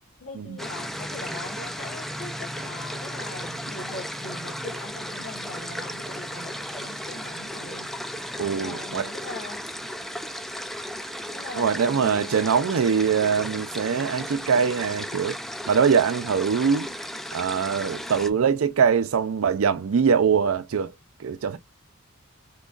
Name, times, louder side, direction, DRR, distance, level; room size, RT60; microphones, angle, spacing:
voice 1, 0.2-7.9 8.6-9.6 11.3-12.5, left 2 dB, 80° left, 1.0 m, -41 dB
sound 1, 0.6-18.3, equal, ahead, 0.3 m, -35 dB
voice 2, 8.4-9.1 11.6-15.4 15.7-16.9 17.3-20.9 21.2-21.6, right 6 dB, 85° right, 0.4 m, -23 dB
3.7 x 2.9 x 2.3 m
head